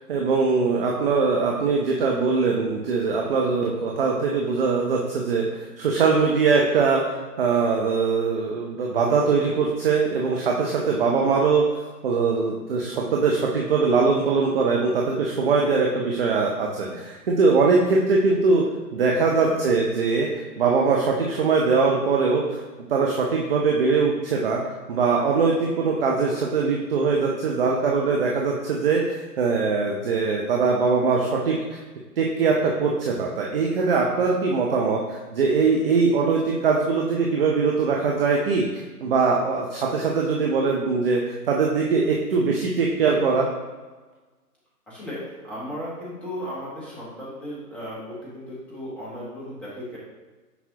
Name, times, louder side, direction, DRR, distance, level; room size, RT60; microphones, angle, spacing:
voice 1, 0.1-11.6 12.0-18.7 18.9-20.3 20.6-22.6 22.9-24.6 24.9-31.6 32.2-43.5, right 4 dB, 35° right, -1 dB, 0.6 m, -22 dB
voice 2, 44.9-50.0, equal, 5° left, -8 dB, 0.8 m, -36 dB
6.1 x 5.5 x 2.8 m, 1.3 s
figure-of-eight pair, 135°, 48 cm